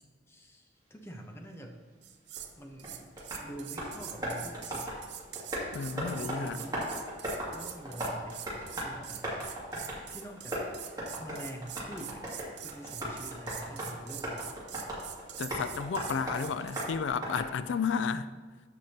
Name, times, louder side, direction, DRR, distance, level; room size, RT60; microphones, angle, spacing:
voice 1, 0.3-1.8 2.6-3.1 3.4-5.0 5.9-6.9 7.2-8.5 8.8-9.6 10.1-12.2 12.6-14.5, right 1 dB, 15° left, 0.8 m, -45 dB
sound 1, 2.0-2.5 2.8-16.9, right 11 dB, 65° right, 0.6 m, -44 dB
Tap, 2.4-17.9, equal, 20° right, 2.3 m, -39 dB
voice 2, 5.7-6.6 15.4-18.3, left 6 dB, 80° left, 0.4 m, -32 dB
14.0 x 5.0 x 2.9 m
head